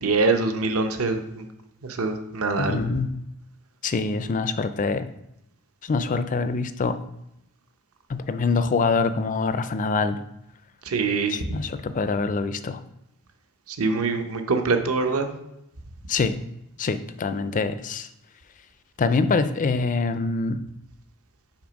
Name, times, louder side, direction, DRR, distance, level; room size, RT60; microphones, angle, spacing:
voice 1, 0.0-1.5 1.8-2.8 10.9-11.4 13.8-15.3, right 3 dB, 65° right, 6 dB, 0.8 m, -24 dB
voice 2, 2.6-3.2 3.8-5.1 5.8-7.0 8.1-10.2 11.3-12.8 16.1-16.4 16.8-18.1 19.0-20.6, left 4 dB, 35° left, 11 dB, 0.4 m, -25 dB
5.9 x 4.2 x 5.1 m, 0.84 s
head